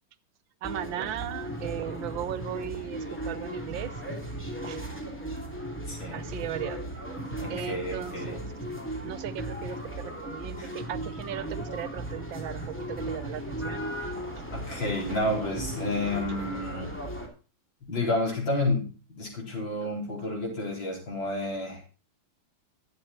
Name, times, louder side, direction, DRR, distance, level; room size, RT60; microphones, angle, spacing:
sound 1, 0.6-17.3, right 1 dB, 5° left, 2.5 m, -36 dB
voice 1, 0.6-3.9 4.6-4.8 6.1-6.8 7.5-8.4 9.0-13.9, right 11 dB, 85° right, 15 dB, 1.5 m, -37 dB
voice 2, 5.9-6.2 7.4-8.4 10.6-10.7 14.5-16.9 17.8-21.8, left 2 dB, 80° left, -2 dB, 5.1 m, -30 dB
12.0 x 9.2 x 4.2 m, 0.36 s
omnidirectional pair, 2.1 m